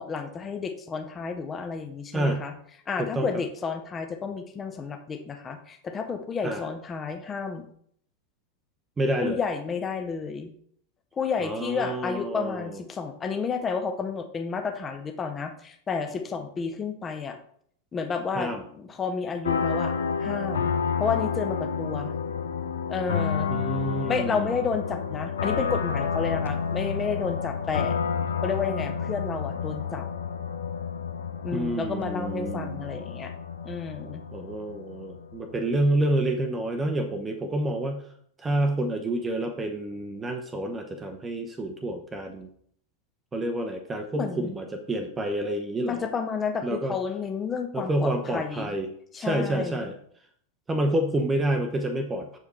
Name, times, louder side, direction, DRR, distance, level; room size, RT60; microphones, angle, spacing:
voice 1, 0.0-2.5 2.9-7.6 9.2-10.5 11.1-17.4 17.9-19.9 20.2-20.7 21.0-22.2 22.9-23.5 24.1-28.0 28.4-30.0 31.4-33.3 33.6-34.2 44.1-44.6 45.9-48.8 49.1-49.9, left 5 dB, 20° left, 6 dB, 0.7 m, -31 dB
voice 2, 2.1-2.4 3.0-3.3 6.4-6.6 9.0-9.4 11.4-12.8 18.4-18.6 23.5-24.5 31.5-32.9 34.3-38.0 38.4-42.5 43.3-46.1 46.6-46.9 47.7-48.9 49.2-49.9 50.7-52.4, right 1 dB, 15° right, 5 dB, 0.7 m, -28 dB
sound 1, 19.4-35.9, left 6 dB, 65° left, 0.5 m, -30 dB
6.8 x 4.9 x 3.1 m, 0.63 s
figure-of-eight pair, 90°, 0 cm